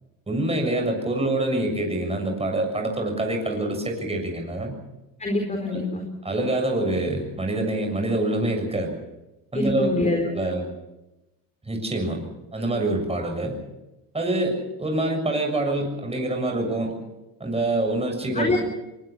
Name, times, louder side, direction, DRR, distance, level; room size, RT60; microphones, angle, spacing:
voice 1, 0.3-4.8 5.7-5.8 6.2-9.0 9.5-10.7 11.6-12.2 12.5-13.6 14.1-17.0 17.4-18.6, right 1 dB, 15° right, 3 dB, 7.2 m, -26 dB
voice 2, 5.2-6.0 9.5-10.3 18.3-18.6, left 2 dB, 15° left, 3 dB, 4.4 m, -25 dB
23.0 x 21.0 x 7.1 m, 0.97 s
supercardioid pair, 90°, 42 cm